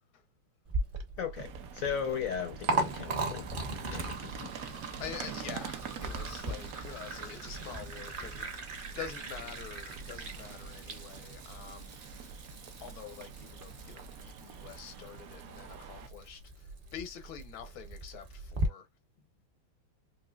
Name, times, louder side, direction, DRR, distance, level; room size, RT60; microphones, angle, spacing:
Liquid, 0.6-18.7, right 2 dB, 45° right, 0.7 m, -39 dB
voice 1, 1.2-3.5 3.9-4.5, left 7 dB, 70° left, 0.8 m, -36 dB
sound 1, 1.4-16.1, right 9 dB, 80° right, 0.7 m, -47 dB
voice 2, 5.0-12.3 12.8-18.9, left 8 dB, 85° left, 1.7 m, -46 dB
4.8 x 2.8 x 2.3 m
omnidirectional pair, 2.2 m